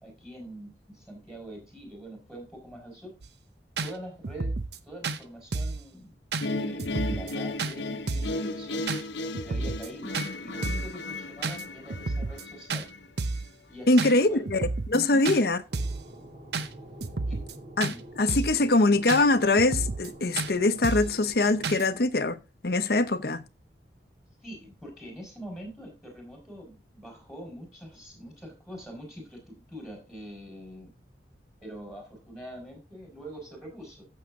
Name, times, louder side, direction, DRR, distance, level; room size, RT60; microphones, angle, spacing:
voice 1, 0.0-3.1 3.8-4.5 4.8-6.1 6.5-8.8 9.4-12.9 13.7-14.4 14.9-15.3 17.3-17.4 17.9-18.0 24.4-30.9 31.6-34.1, right 1 dB, ahead, 4.2 m, -44 dB
sound 1, 3.2-3.3 3.8-3.9 4.2-4.8 5.0-5.2 5.5-5.8 6.3-6.5 6.8-7.3 7.6-7.7 8.1-8.4 8.9-9.0 9.3-9.9 10.1-10.3 10.6-10.9 11.4-11.6 11.9-12.4 12.7-12.8 13.2-13.5 14.0-14.1 14.5-15.0 15.2-15.4 15.7-16.0 16.5-16.7 17.0-17.5 17.8-18.0 18.3-18.6 19.1-19.2 19.6-20.1 20.4-20.5 20.8-21.1 21.6-21.8, right 3 dB, 70° right, 0.8 m, -31 dB
sound 2, 6.4-13.5, left 2 dB, 85° left, 0.9 m, -35 dB
voice 2, 13.9-15.6 17.8-23.4, left 2 dB, 55° left, 0.8 m, -23 dB
sound 3, 15.7-21.7, right 1 dB, 40° right, 2.5 m, -47 dB
14.5 x 6.4 x 3.6 m
head